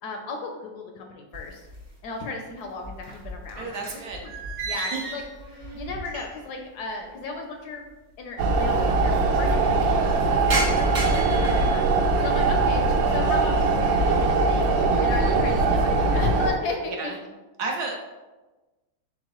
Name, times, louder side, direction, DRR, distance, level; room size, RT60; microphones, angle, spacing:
voice 1, 0.0-1.7 2.0-3.7 4.1-4.3 4.6-5.2 5.7-7.9 8.2-14.7 15.0-17.1, left 3 dB, 70° left, 3 dB, 1.0 m, -35 dB
sound 1, 1.3-2.2 2.5-6.6 6.9-7.0 7.8-7.9 8.1-8.2 8.5-9.0 9.4-12.6 13.0-13.5 14.0-14.4 14.8-15.7, right 2 dB, 35° right, 0.7 m, -35 dB
voice 2, 3.6-4.3 4.7-5.0 5.7-5.8 16.9-17.2 17.6-17.9, right 4 dB, 70° right, 1 dB, 1.0 m, -32 dB
sound 2, 8.4-16.5, right 3 dB, 85° right, 1.3 m, -21 dB
4.6 x 3.9 x 2.9 m, 1.2 s
omnidirectional pair, 2.0 m